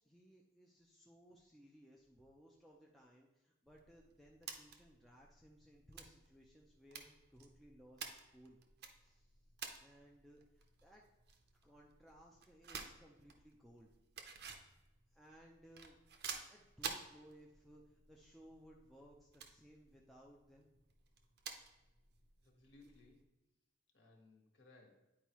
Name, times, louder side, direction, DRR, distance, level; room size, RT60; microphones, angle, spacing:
voice 1, 0.0-8.6 9.0-9.4 9.8-11.0 11.5-13.9 15.1-16.0 16.5-20.7, equal, ahead, -2 dB, 0.5 m, -62 dB
sound 1, 3.7-23.2, right 6 dB, 50° right, 0.6 m, -53 dB
voice 2, 22.4-23.3 23.9-25.0, left 2 dB, 55° left, 0 dB, 1.4 m, -64 dB
9.8 x 4.6 x 3.0 m, 0.97 s
head